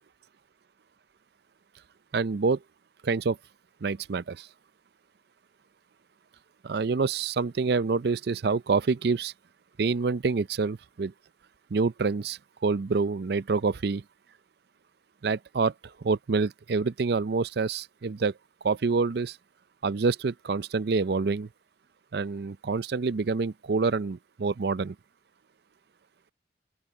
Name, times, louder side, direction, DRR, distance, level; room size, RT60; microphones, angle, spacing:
voice 1, 2.1-2.6 3.0-3.4 3.8-4.5 6.6-9.3 9.8-11.1 11.7-14.0 15.2-18.3 18.6-19.4 19.8-21.5 22.1-25.0, right 4 dB, 60° right, 0.5 m, -27 dB
open air
head